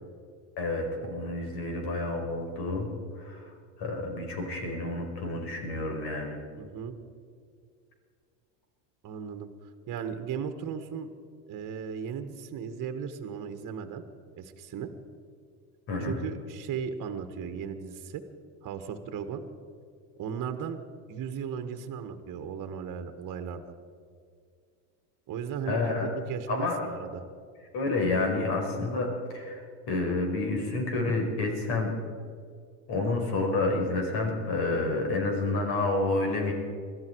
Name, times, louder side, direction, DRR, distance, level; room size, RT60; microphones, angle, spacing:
voice 1, 0.6-2.9 3.2-3.4 3.8-6.4 15.9-16.2 25.7-26.1 26.5-26.8 27.7-29.6 29.9-31.9 32.9-36.5, left 2 dB, 55° left, 2 dB, 5.1 m, -29 dB
voice 2, 6.6-6.9 9.0-11.1 11.5-14.0 14.4-14.9 16.0-18.2 18.6-19.4 20.2-20.8 21.1-23.7 25.3-27.2, right 7 dB, 45° right, 8 dB, 1.7 m, -36 dB
21.5 x 13.5 x 4.8 m, 2.2 s
supercardioid pair, 105°, 45 cm